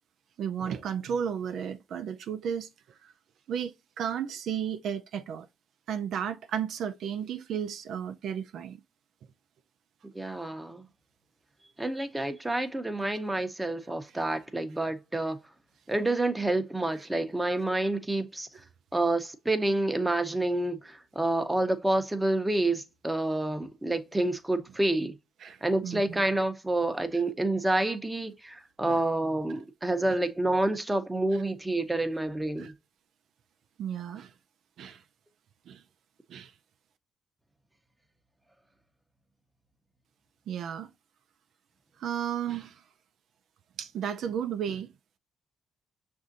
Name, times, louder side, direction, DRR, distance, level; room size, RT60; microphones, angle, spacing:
voice 1, 0.4-2.7 3.0-3.1 3.5-5.5 5.9-8.8 25.4-26.2 28.8-29.0 30.1-30.2 32.6-32.7 33.8-34.3 34.8-35.0 35.7-35.8 36.3-36.5 40.5-40.9 42.0-42.8 43.8-44.9, right 8 dB, 70° right, 0.4 m, -33 dB
voice 2, 10.1-10.9 11.8-15.4 15.9-18.5 18.9-25.1 25.6-32.7, right 2 dB, 10° right, 0.7 m, -28 dB
6.0 x 2.6 x 2.5 m
cardioid pair, 90°, 0 cm